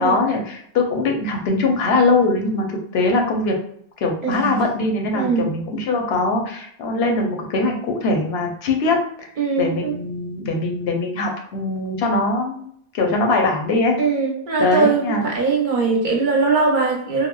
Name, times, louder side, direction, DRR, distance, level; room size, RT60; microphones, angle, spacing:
voice 1, 0.0-2.7 2.9-3.5 4.0-9.3 9.6-12.7 12.9-14.0 14.6-15.3, left 3 dB, 80° left, 2 dB, 0.8 m, -21 dB
voice 2, 4.2-4.6 5.1-5.5 9.4-10.0 14.0-17.3, right 4 dB, 60° right, 0 dB, 0.7 m, -20 dB
3.4 x 2.0 x 2.2 m, 0.67 s
omnidirectional pair, 1.0 m